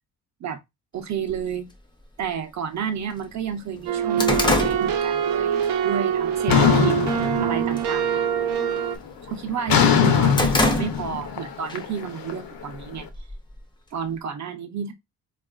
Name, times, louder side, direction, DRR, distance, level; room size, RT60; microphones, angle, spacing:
voice 1, 0.9-1.7 2.2-7.0 7.4-8.3 9.3-13.1 13.9-14.9, right 7 dB, 45° right, 0.5 m, -31 dB
sound 1, 1.3-1.4 2.3-2.4 2.9-3.0 3.3-5.7 6.1-6.4 6.9-7.4 7.6-7.9 8.2-9.5 9.9-11.4 11.7-11.8 12.7-13.6, left 2 dB, 10° left, 0.4 m, -26 dB
sound 2, 3.9-9.0, right 8 dB, 90° right, 0.6 m, -24 dB
sound 3, 6.5-8.0 8.4-8.8 9.7-12.8, left 7 dB, 60° left, 0.6 m, -21 dB
4.4 x 2.3 x 2.3 m
wide cardioid pair, 170°, 40 cm